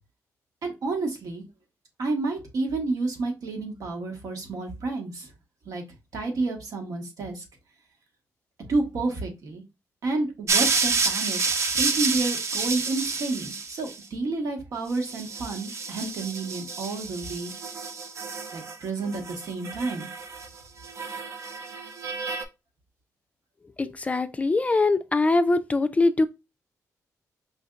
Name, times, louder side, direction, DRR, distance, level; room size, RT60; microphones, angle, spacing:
voice 1, 0.6-1.4 2.0-5.3 5.6-5.8 6.1-7.4 8.7-9.6 10.0-11.4 11.7-17.8 18.5-20.1, right 3 dB, 75° right, 1.2 m, -30 dB
sound 1, 10.5-14.0 14.9-18.8 19.0-20.5 20.8-22.4, right 4 dB, 50° right, 0.5 m, -29 dB
voice 2, 23.8-26.2, left 3 dB, 25° left, 0.3 m, -22 dB
5.0 x 2.7 x 2.3 m
cardioid pair, 100°, 6 cm